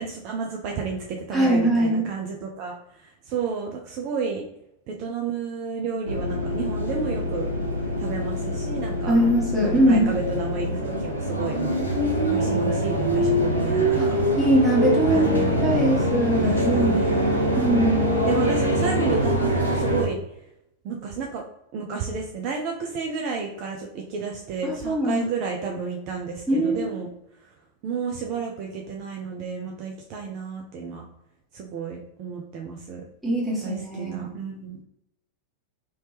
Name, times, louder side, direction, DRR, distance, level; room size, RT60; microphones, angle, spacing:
voice 1, 0.0-4.5 4.9-7.5 8.0-9.1 9.6-11.8 12.3-14.2 15.1-16.1 16.4-17.3 18.3-20.2 20.8-21.4 21.7-27.1 27.8-31.0 31.5-33.0 33.6-34.8, right 5 dB, 40° right, 1 dB, 0.4 m, -31 dB
voice 2, 1.3-2.0 9.1-10.1 14.0-14.1 14.4-18.0 24.6-25.2 26.5-26.9 33.2-34.3, right 1 dB, 5° right, -5 dB, 1.4 m, -22 dB
sound 1, 6.0-20.1, equal, 85° left, 0.7 m, -24 dB
3.0 x 2.8 x 3.2 m, 0.82 s
figure-of-eight pair, 90°, 0 cm